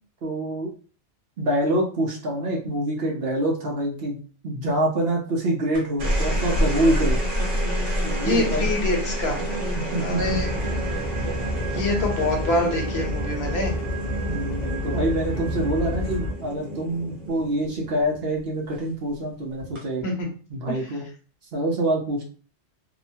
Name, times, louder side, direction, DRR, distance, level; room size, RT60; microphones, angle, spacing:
voice 1, 0.2-0.7 1.4-4.2 4.4-7.2 8.0-8.7 9.8-10.4 14.3-20.1 20.5-21.0 21.5-22.2, right 1 dB, 60° right, 0 dB, 0.9 m, -26 dB
sound 1, 5.7-18.3 19.6-20.0, equal, 85° right, 1.2 m, -28 dB
voice 2, 8.2-9.4 10.0-10.6 11.7-13.7 20.0-20.3 20.7-20.8, left 2 dB, 65° left, 1 dB, 1.0 m, -25 dB
sound 2, 10.1-16.3, left 1 dB, 10° right, 1.0 m, -29 dB
2.9 x 2.1 x 2.6 m, 0.39 s
omnidirectional pair, 1.2 m